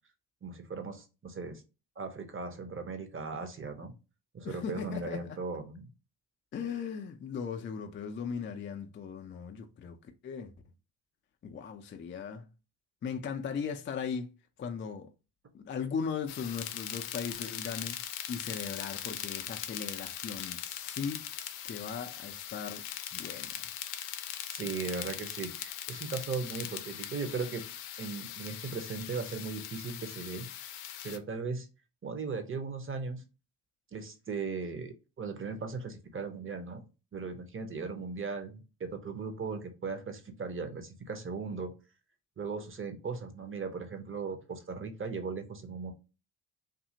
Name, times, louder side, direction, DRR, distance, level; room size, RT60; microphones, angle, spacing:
voice 1, 0.4-1.6 2.0-3.9 4.3-5.9 24.5-27.7 28.0-30.5 31.0-31.7 32.0-33.2 33.9-36.8 37.1-41.7 42.4-45.9, right 4 dB, 25° right, 0.8 m, -38 dB
voice 2, 4.4-5.2 6.5-10.0 10.2-10.5 11.4-12.5 13.0-14.3 14.6-15.1 15.5-18.0 18.3-21.3 21.6-22.8 23.1-23.7, left 6 dB, 25° left, 0.4 m, -38 dB
sound 1, 16.3-31.2, left 11 dB, 80° left, 0.5 m, -40 dB
2.7 x 2.6 x 2.7 m
hypercardioid pair, 45°, 50 cm